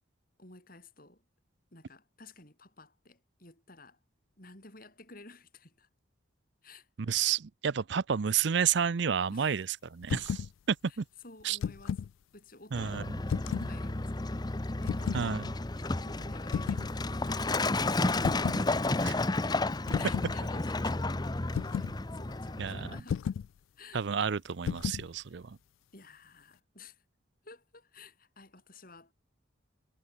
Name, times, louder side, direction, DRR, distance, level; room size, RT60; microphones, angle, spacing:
voice 1, 0.4-1.2 1.7-4.0 4.4-5.9 6.6-7.3 9.3-9.5 10.9-11.0 11.2-12.0 12.3-13.0 13.5-15.3 15.8-19.3 19.9-23.3 23.8-24.0 25.9-27.0 27.4-29.1, left 3 dB, 45° left, 7.4 m, -53 dB
voice 2, 7.0-11.0 11.4-11.6 12.7-13.0 15.1-15.4 19.0-19.2 22.6-22.9 23.9-25.6, right 7 dB, 60° right, 0.5 m, -30 dB
sound 1, 10.0-10.5 11.4-12.1 13.3-13.7 14.8-15.3 16.5-16.9 18.2-18.7 19.9-20.3 21.5-22.0 23.1-23.5 24.6-25.1, left 7 dB, 80° left, 0.3 m, -33 dB
Truck, 12.7-23.0, left 2 dB, 20° left, 0.7 m, -32 dB
head